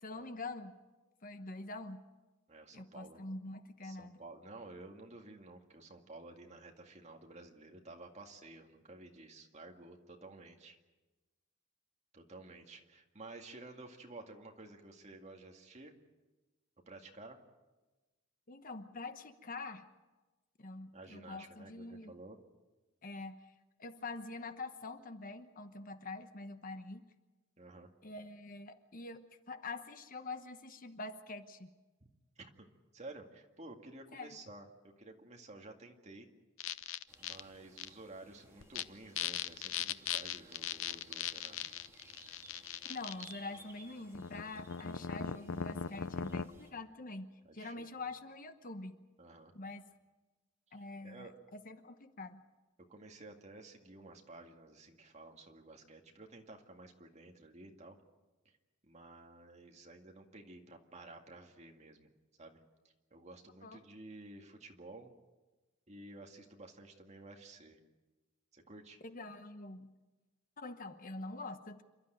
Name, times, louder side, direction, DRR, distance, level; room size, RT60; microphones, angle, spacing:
voice 1, 0.0-0.7 1.2-2.0 2.7-4.2 18.5-19.8 20.6-22.2 23.0-23.4 23.8-27.0 28.0-29.2 29.5-31.7 34.1-34.4 42.9-49.0 49.5-49.8 50.7-52.4 63.6-63.8 69.0-69.9 70.6-71.8, left 3 dB, 45° left, 9 dB, 1.1 m, -45 dB
voice 2, 2.5-3.2 3.8-10.8 12.1-16.0 16.9-17.4 20.9-22.4 27.6-27.9 32.4-32.7 32.9-36.3 37.2-41.6 47.4-47.9 49.2-49.5 50.7-51.3 52.9-58.0 58.5-58.6 58.8-62.1 62.4-62.6 63.1-65.1 65.9-67.8 68.5-69.0, right 2 dB, 35° right, 3 dB, 2.2 m, -53 dB
sound 1, 36.6-37.4 37.8-37.9 38.6-38.8 39.2-43.3 44.1-46.5, left 8 dB, 80° left, 0.7 m, -39 dB
sound 2, 37.1-46.7, right 2 dB, 15° right, 2.6 m, -58 dB
28.5 x 12.5 x 9.2 m, 1.2 s
head